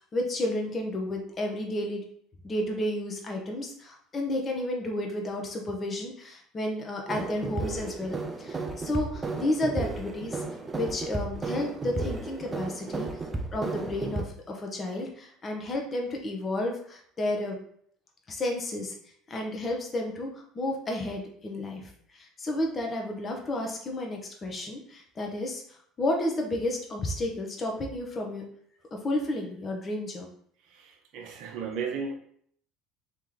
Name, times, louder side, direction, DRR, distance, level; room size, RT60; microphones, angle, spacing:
voice 1, 0.1-2.0 2.4-10.4 10.7-13.1 13.5-17.6 18.3-19.0 19.3-25.6 26.0-28.4 28.9-30.3, left 1 dB, 30° left, 1 dB, 1.0 m, -32 dB
sound 1, 7.1-14.2, right 3 dB, 25° right, 0.6 m, -34 dB
voice 2, 30.7-32.1, right 5 dB, 65° right, 3 dB, 0.6 m, -35 dB
3.3 x 2.9 x 3.8 m, 0.64 s
hypercardioid pair, 70°, 0 cm